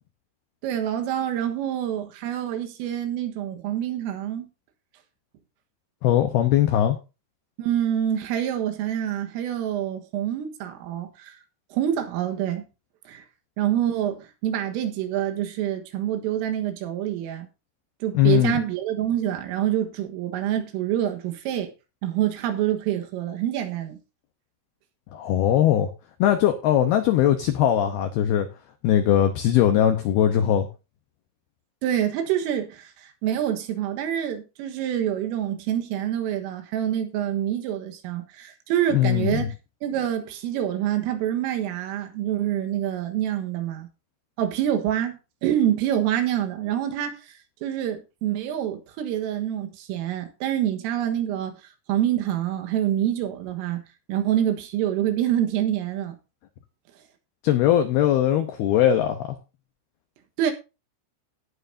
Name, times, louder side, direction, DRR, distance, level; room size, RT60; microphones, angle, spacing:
voice 1, 0.6-4.5 7.6-11.4 11.7-12.6 13.1-13.2 13.6-17.5 18.0-21.7 22.0-24.0 31.8-39.5 39.8-43.9 44.4-47.3 47.6-56.2 60.4-60.5, right 11 dB, 90° right, 4.1 m, -26 dB
voice 2, 6.0-7.0 18.1-18.6 25.1-25.9 26.2-28.5 28.8-30.7 38.9-39.5 57.4-59.4, left 11 dB, 75° left, 2.3 m, -20 dB
18.0 x 9.1 x 2.7 m
omnidirectional pair, 5.7 m